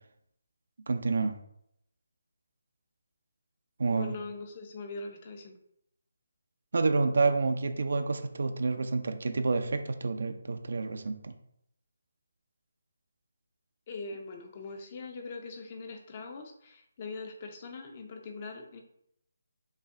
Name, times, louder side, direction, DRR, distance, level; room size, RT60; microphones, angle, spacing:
voice 1, 0.9-1.4 3.8-4.2 6.7-11.3, right 3 dB, 60° right, 8 dB, 0.5 m, -28 dB
voice 2, 3.9-5.5 13.9-18.8, left 3 dB, 35° left, 4 dB, 0.7 m, -42 dB
5.5 x 2.4 x 3.6 m, 0.74 s
figure-of-eight pair, 155°, 0 cm